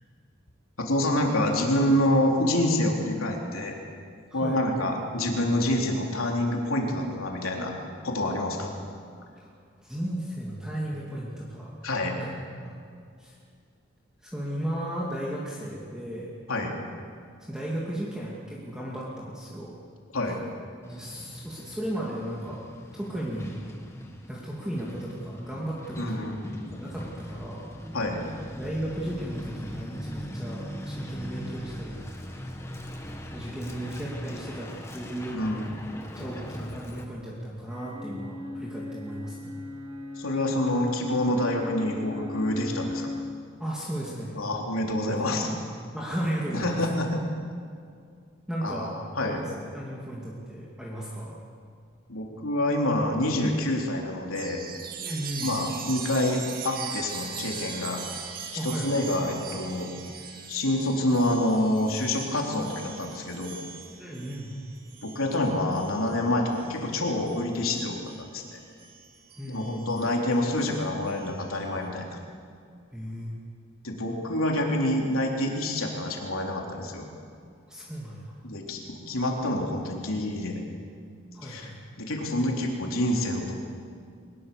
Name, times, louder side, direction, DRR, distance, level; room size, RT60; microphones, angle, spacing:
voice 1, 0.8-3.7 4.3-7.7 8.0-8.7 11.8-12.2 16.5-16.7 20.1-20.4 26.0-26.9 27.9-28.2 35.3-36.0 40.2-43.1 44.4-45.5 46.5-47.4 48.6-49.4 52.1-54.6 55.4-58.0 58.6-60.0 60.5-63.6 65.0-68.6 69.5-72.2 73.8-77.1 78.4-80.6 81.4-81.7 82.0-83.5, left 1 dB, 85° left, 0 dB, 3.8 m, -27 dB
voice 2, 4.3-4.6 9.4-9.5 9.8-11.7 12.2-12.4 12.6-12.8 13.2-13.3 14.2-16.3 17.4-19.8 20.8-22.6 22.9-23.6 24.3-26.1 26.7-27.7 28.5-32.0 33.3-35.9 36.2-39.5 43.6-44.4 45.1-45.6 45.9-46.8 48.5-49.0 49.2-51.4 55.0-55.6 58.5-59.1 64.0-64.6 69.4-69.9 72.9-73.3 77.7-78.4 81.3-81.8, right 1 dB, 5° right, -5 dB, 2.6 m, -35 dB
Truck, 20.8-37.0, equal, 15° left, 1.7 m, -40 dB
sound 1, 37.7-43.2, left 2 dB, 80° right, 6.4 m, -37 dB
Chime, 54.3-68.3 68.8-71.6, right 6 dB, 45° right, 2.4 m, -41 dB
23.0 x 20.5 x 7.2 m, 2.3 s
head